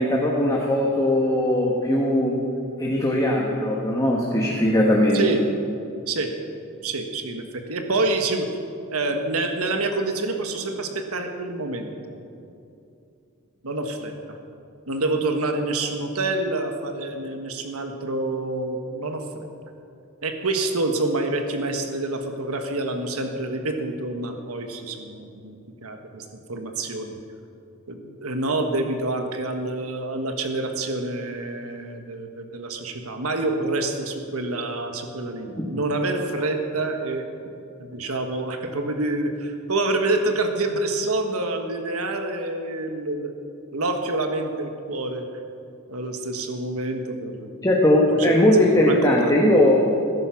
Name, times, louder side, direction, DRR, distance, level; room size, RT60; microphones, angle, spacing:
voice 1, 0.0-2.3 2.8-5.2 35.5-35.7 47.6-49.8, left 1 dB, 15° left, -2 dB, 1.6 m, -19 dB
voice 2, 6.8-8.5 8.9-12.1 13.6-14.4 14.9-19.5 20.2-27.2 27.9-37.2 37.8-43.3 43.7-45.2 45.9-47.6 48.1-48.3 48.8-49.3, right 2 dB, 75° right, 5 dB, 1.4 m, -27 dB
20.5 x 11.0 x 5.8 m, 2.6 s
head